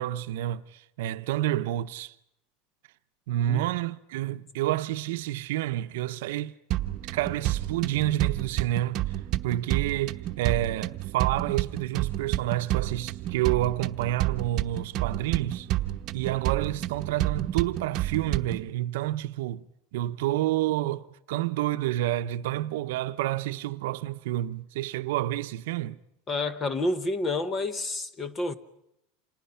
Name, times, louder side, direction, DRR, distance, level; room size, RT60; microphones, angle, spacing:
voice 1, 0.0-2.1 3.3-6.5 7.1-9.0 9.4-15.7 16.1-19.6 19.9-26.0, right 14 dB, 70° right, 0.9 m, -29 dB
sound 1, 6.7-18.7, right 14 dB, 40° right, 1.1 m, -30 dB
voice 2, 26.3-28.5, left 2 dB, 20° left, 1.1 m, -29 dB
30.0 x 27.5 x 5.8 m
supercardioid pair, 160°, 0 cm